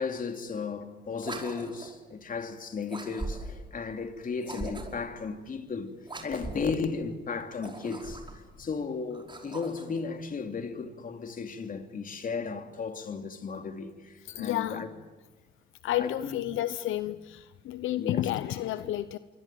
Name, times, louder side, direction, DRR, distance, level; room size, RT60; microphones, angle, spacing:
voice 1, 0.0-5.9 6.2-8.2 8.6-14.9 16.0-16.4 18.0-18.3, left 5 dB, 45° left, 3.0 m, -35 dB
sound 1, 1.2-2.0 2.9-3.7 4.4-5.1 6.0-6.8 7.5-8.5 9.1-10.0, right 2 dB, 25° right, 5.4 m, -40 dB
voice 2, 14.2-14.8 15.8-19.2, left 13 dB, 85° left, 0.8 m, -31 dB
26.5 x 24.0 x 9.3 m
cardioid pair, 90°, 20 cm